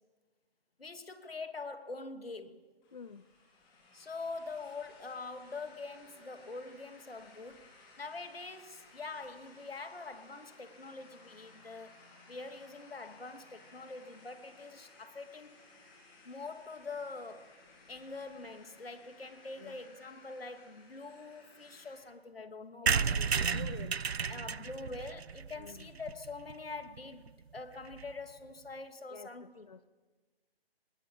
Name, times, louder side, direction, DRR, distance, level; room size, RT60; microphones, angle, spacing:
voice 1, 0.8-2.6 3.9-7.7 8.0-12.0 12.3-15.6 16.2-17.6 17.9-23.3 24.3-29.7, left 3 dB, 70° left, 2.4 m, -44 dB
sound 1, 2.8-22.1, left 3 dB, 15° left, 4.4 m, -59 dB
voice 2, 2.9-3.3 19.6-19.8 22.8-24.0 25.6-25.9 29.1-29.8, left 5 dB, 40° left, 0.6 m, -49 dB
sound 2, 22.9-26.5 27.0-27.1 27.3-27.4 27.6-27.7 27.9-28.1, right 5 dB, 85° right, 0.7 m, -33 dB
25.0 x 19.0 x 9.1 m
figure-of-eight pair, 150°, 31 cm